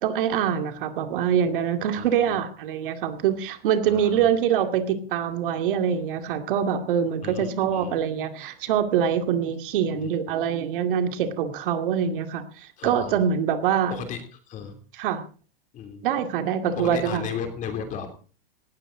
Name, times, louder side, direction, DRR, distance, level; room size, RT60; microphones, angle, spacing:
voice 1, 0.0-14.1 15.0-15.2 16.0-17.2, right 8 dB, 60° right, 7 dB, 2.4 m, -24 dB
voice 2, 2.0-2.4 3.9-4.3 7.2-8.0 10.0-10.1 12.8-13.2 13.9-14.2 14.5-14.7 15.7-16.0 16.8-18.1, left 7 dB, 25° left, 7 dB, 3.0 m, -35 dB
18.0 x 14.0 x 3.9 m, 0.38 s
supercardioid pair, 160°, 29 cm